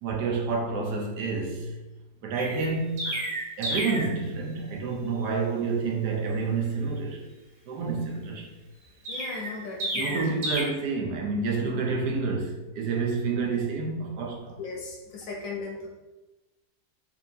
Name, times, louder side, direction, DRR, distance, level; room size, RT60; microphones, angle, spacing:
voice 1, 0.0-1.7 2.2-3.3 3.6-7.2 7.7-8.5 9.9-14.6, right 4 dB, 80° right, 1.2 m, -29 dB
Chirp tweet, 2.3-4.1 9.0-10.6, right 1 dB, 60° right, 1.2 m, -31 dB
voice 2, 9.1-10.2 14.6-15.9, left 4 dB, 65° left, 1.0 m, -37 dB
4.2 x 2.6 x 2.7 m
omnidirectional pair, 1.7 m